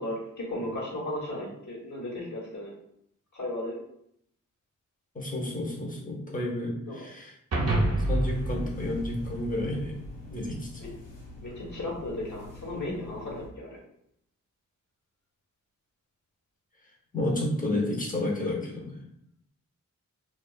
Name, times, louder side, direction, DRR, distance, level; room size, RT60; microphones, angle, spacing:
voice 1, 0.0-2.7 3.3-3.8 6.8-6.9 10.8-10.9 11.4-13.8, left 1 dB, 65° left, -5 dB, 1.2 m, -35 dB
voice 2, 5.1-7.3 8.1-10.0 10.3-10.9 17.1-19.0, left 1 dB, 25° left, -3 dB, 0.8 m, -31 dB
sound 1, 7.5-10.0, right 1 dB, 50° right, 0.6 m, -28 dB
sound 2, 8.3-13.5, left 1 dB, 85° left, 0.8 m, -44 dB
2.4 x 2.4 x 2.3 m, 0.73 s
cardioid pair, 40°, 32 cm